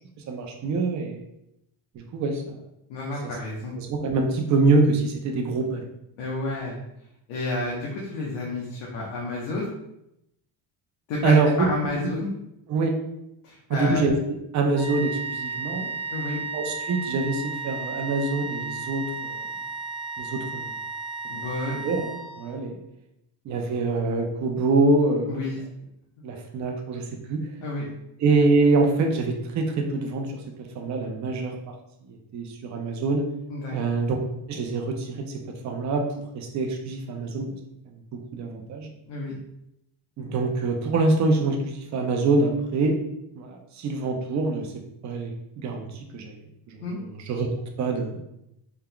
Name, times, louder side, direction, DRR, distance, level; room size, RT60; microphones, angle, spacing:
voice 1, 0.3-1.2 1.9-2.6 3.8-5.8 11.2-12.0 12.7-12.9 13.7-15.9 16.5-19.4 20.2-20.7 21.3-21.4 21.7-22.1 22.4-22.8 23.5-25.5 26.2-27.5 28.2-30.4 30.7-31.6 32.1-33.3 33.7-34.2 34.5-36.1 36.3-37.5 38.1-38.9 40.2-43.0 43.4-44.7 45.0-46.4 46.7-46.8 47.3-47.5 47.8-48.2, right 3 dB, 35° right, 2 dB, 0.6 m, -25 dB
voice 2, 2.9-3.7 6.2-6.8 7.3-9.7 11.1-12.3 13.4-14.1 16.1-16.4 21.3-21.8 25.3-25.6 27.6-27.9 33.5-33.8 39.1-39.3 46.8-47.0, left 2 dB, 75° left, -4 dB, 1.1 m, -30 dB
sound 1, 14.7-22.6, right 5 dB, 10° right, 1.0 m, -34 dB
4.5 x 3.7 x 2.2 m, 0.82 s
cardioid pair, 150°, 49 cm